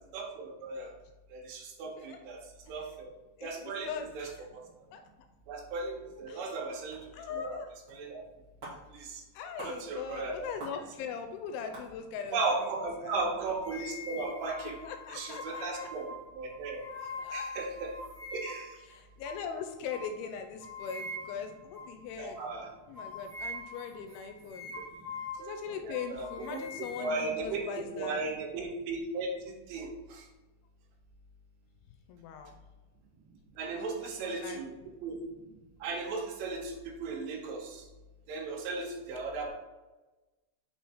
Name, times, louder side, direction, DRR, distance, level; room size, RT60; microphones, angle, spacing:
voice 1, 0.1-0.9 1.3-2.4 2.7-3.1 3.4-4.3 4.5-4.6 5.5-7.0 7.3-7.6 7.9-8.2 8.9-9.2 9.6-10.5 12.3-14.8 15.1-16.1 16.4-16.8 17.3-17.9 18.3-18.7 22.2-22.7 25.8-26.6 27.0-27.6 28.0-30.2 33.6-34.7 35.0-35.2 35.8-37.8 38.3-39.5, right 3 dB, 90° right, 0 dB, 3.1 m, -36 dB
voice 2, 3.4-4.5 4.9-5.0 6.3-6.6 7.1-7.7 9.3-13.2 14.8-15.9 17.2-17.5 18.8-22.4 22.9-24.7 25.4-28.2 32.1-32.5 33.6-34.9, left 7 dB, 85° left, 6 dB, 2.2 m, -41 dB
sound 1, 6.9-7.0 7.9-8.0 8.2-8.3 8.6-8.8 9.6-9.8 10.6-10.8 11.3-11.4 11.7-11.9, right 2 dB, 40° right, 1.3 m, -44 dB
sound 2, 13.6-18.8 19.2-19.4 19.9-20.1 20.6-21.5 21.8-22.0 22.3-22.5 23.0-25.6 25.9-27.8, left 2 dB, 60° right, 1.3 m, -43 dB
7.0 x 3.1 x 4.4 m, 1.1 s
omnidirectional pair, 4.7 m